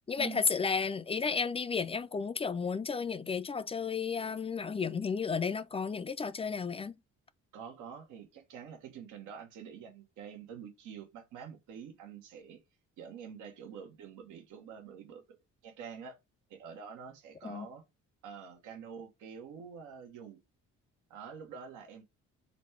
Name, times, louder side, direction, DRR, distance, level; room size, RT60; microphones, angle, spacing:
voice 1, 0.1-7.0 17.4-17.7, left 5 dB, 20° left, 0.4 m, -33 dB
voice 2, 7.5-12.6 13.0-15.2 15.6-16.2 16.5-17.8 18.2-20.4 21.1-22.0, right 7 dB, 90° right, 0.9 m, -47 dB
4.0 x 2.2 x 4.3 m
cardioid pair, 90°, 30 cm